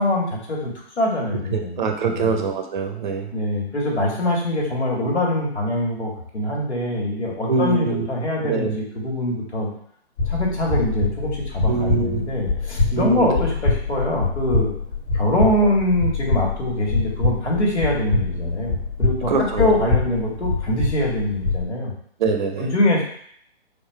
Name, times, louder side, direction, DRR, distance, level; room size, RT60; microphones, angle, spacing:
voice 1, 0.0-1.9 2.1-2.4 3.3-9.7 10.3-14.7 15.1-21.9 22.6-23.0, left 1 dB, 80° left, -2 dB, 1.7 m, -23 dB
voice 2, 1.5-3.3 7.5-8.1 8.4-8.8 11.7-12.3 13.0-13.3 19.3-19.7 22.2-22.7, right 5 dB, 45° right, 4 dB, 0.6 m, -23 dB
sound 1, 10.2-21.6, left 3 dB, 50° left, 1.2 m, -24 dB
4.0 x 2.5 x 4.3 m, 0.64 s
hypercardioid pair, 140°, 33 cm